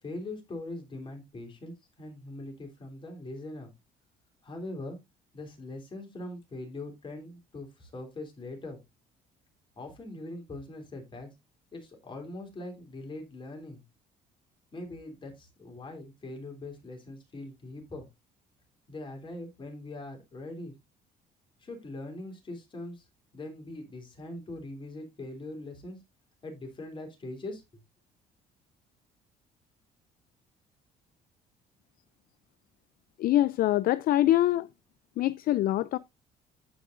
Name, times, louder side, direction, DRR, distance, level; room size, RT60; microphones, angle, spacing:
voice 1, 0.0-3.7 4.4-5.0 5.3-8.8 9.7-11.3 11.7-13.8 14.7-18.1 18.9-20.7 21.6-23.0 23.3-26.0 26.4-27.6, left 2 dB, 30° left, 3.3 m, -41 dB
voice 2, 33.2-34.7 35.2-36.0, left 14 dB, 60° left, 0.4 m, -24 dB
14.5 x 4.9 x 2.5 m
cardioid pair, 110°, 17 cm